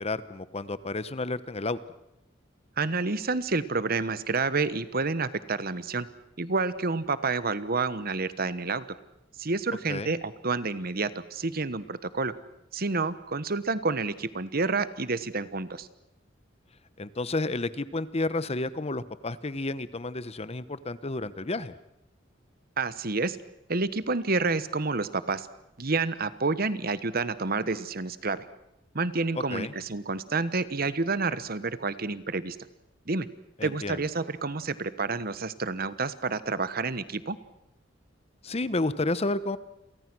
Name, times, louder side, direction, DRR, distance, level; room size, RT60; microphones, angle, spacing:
voice 1, 0.0-1.8 9.9-10.1 17.0-21.7 29.3-29.7 33.6-34.0 38.4-39.6, left 2 dB, 35° left, 15 dB, 1.0 m, -31 dB
voice 2, 2.8-6.1 6.4-8.8 9.4-12.3 12.7-15.9 22.8-23.4 23.7-25.5 25.8-28.4 28.9-32.6 33.1-33.3 33.6-37.4, right 3 dB, 55° right, 15 dB, 1.2 m, -29 dB
30.0 x 23.5 x 6.2 m, 0.86 s
head